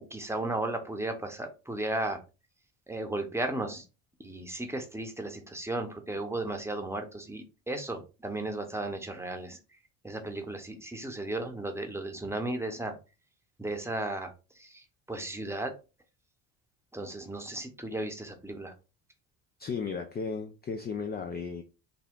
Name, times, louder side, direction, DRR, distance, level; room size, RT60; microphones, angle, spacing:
voice 1, 0.0-2.2 2.9-3.8 4.2-9.6 10.0-12.9 13.6-14.3 14.6-15.7 16.9-18.7, right 2 dB, 5° right, 0.8 m, -35 dB
voice 2, 19.6-21.6, left 5 dB, 25° left, 0.4 m, -35 dB
3.6 x 2.2 x 3.6 m
supercardioid pair, 75°, 40 cm